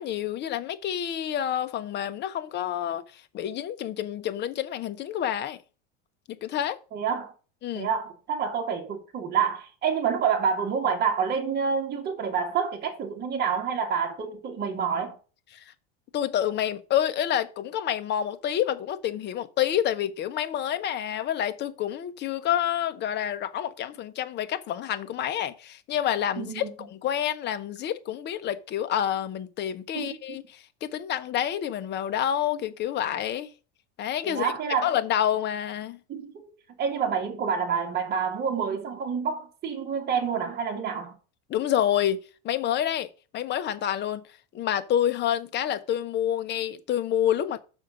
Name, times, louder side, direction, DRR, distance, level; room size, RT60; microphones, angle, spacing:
voice 1, 0.0-5.6 6.3-6.8 7.6-7.9 15.5-15.6 16.1-33.5 34.0-34.5 34.8-36.0 41.5-43.1 43.3-44.2 44.5-47.6, left 10 dB, 35° left, 0.9 m, -28 dB
voice 2, 6.9-7.3 7.7-15.1 26.4-26.7 29.9-30.4 34.3-34.9 36.1-36.3 36.8-41.1, right 6 dB, 30° right, 2.1 m, -28 dB
6.4 x 4.9 x 6.5 m
supercardioid pair, 130°, 30 cm